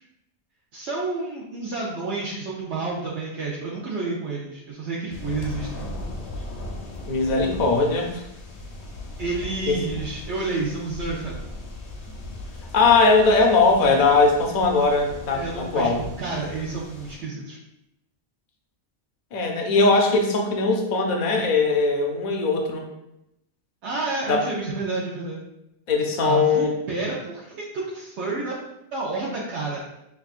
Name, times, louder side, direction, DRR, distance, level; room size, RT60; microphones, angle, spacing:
voice 1, 0.7-5.8 9.2-11.4 15.3-15.9 16.2-17.6 23.8-25.4 26.2-28.5 28.9-29.8, right 3 dB, 80° right, -6 dB, 1.0 m, -30 dB
sound 1, 5.1-17.2, left 2 dB, 70° left, 1.0 m, -38 dB
voice 2, 7.1-8.2 9.7-9.8 12.7-16.0 19.3-22.8 24.3-24.4 25.9-26.7, left 3 dB, 50° left, 1 dB, 0.6 m, -20 dB
6.0 x 2.3 x 2.4 m, 0.86 s
omnidirectional pair, 1.1 m